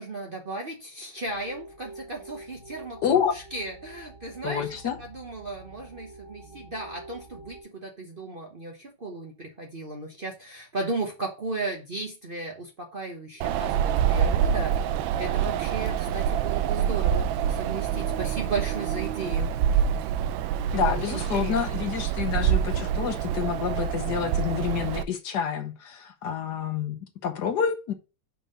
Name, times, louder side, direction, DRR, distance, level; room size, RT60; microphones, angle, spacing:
voice 1, 0.0-19.8 20.7-21.6, right 2 dB, 40° right, 0.9 m, -35 dB
sound 1, 1.2-7.6, right 2 dB, 15° right, 1.9 m, -46 dB
voice 2, 3.0-3.3 4.4-5.0 20.7-27.9, left 8 dB, 65° left, 1.4 m, -28 dB
Wind, 13.4-25.0, right 9 dB, 85° right, 1.3 m, -26 dB
5.4 x 4.6 x 5.2 m
omnidirectional pair, 2.1 m